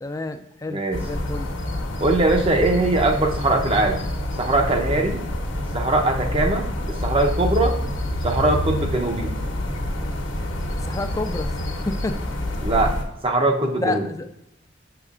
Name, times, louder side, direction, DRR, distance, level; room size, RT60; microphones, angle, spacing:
voice 1, 0.0-1.5 10.8-11.5 11.9-12.2 13.8-14.3, left 2 dB, 15° left, 8 dB, 0.4 m, -29 dB
voice 2, 0.7-1.0 2.0-4.0 4.4-5.2 5.7-7.8 8.2-9.3 12.6-12.9 13.2-14.1, right 2 dB, 30° right, 3 dB, 0.7 m, -21 dB
sound 1, 0.9-13.0, left 1 dB, 85° left, 1.1 m, -27 dB
6.8 x 6.4 x 2.4 m, 0.86 s
head